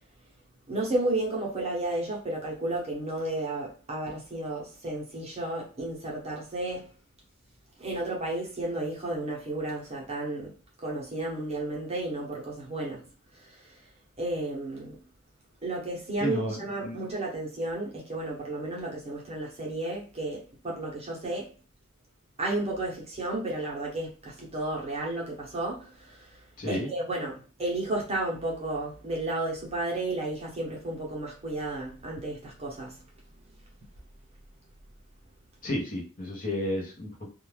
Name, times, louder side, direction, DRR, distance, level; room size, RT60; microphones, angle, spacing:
voice 1, 0.7-6.9 7.8-13.1 13.3-13.8 14.2-15.0 15.6-21.5 22.4-33.0, right 2 dB, 30° right, 0.8 m, -33 dB
voice 2, 16.2-16.6 16.8-17.0 26.6-26.9 35.6-37.3, left 1 dB, 40° left, 0.8 m, -31 dB
2.4 x 2.3 x 3.2 m
head